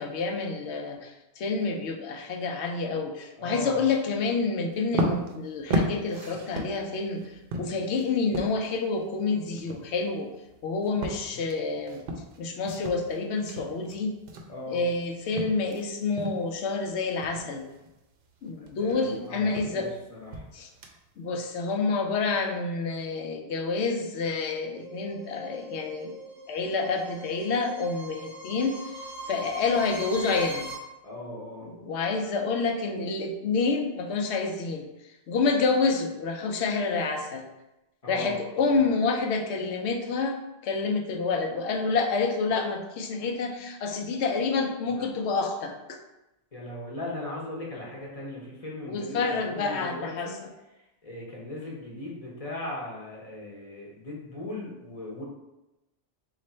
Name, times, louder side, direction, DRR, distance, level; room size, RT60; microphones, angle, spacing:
voice 1, 0.0-7.2 7.6-10.3 10.6-12.0 12.4-14.2 14.7-17.7 18.4-19.9 20.5-20.7 21.2-26.1 26.5-28.9 29.3-30.7 31.6-34.9 35.3-37.5 38.1-40.4 40.6-46.0 48.9-50.3, left 4 dB, 85° left, 3 dB, 0.9 m, -28 dB
voice 2, 3.4-3.7 14.5-14.8 18.6-20.4 31.0-31.7 38.0-38.9 44.9-45.1 46.5-50.4 51.0-55.2, left 1 dB, 35° left, -3 dB, 0.8 m, -38 dB
sound 1, 4.7-15.8 16.2-16.6 17.0-21.3, equal, 65° right, 0.7 m, -34 dB
sound 2, 24.7-30.7, right 1 dB, 5° right, 0.7 m, -41 dB
3.1 x 2.5 x 4.2 m, 0.97 s
omnidirectional pair, 1.1 m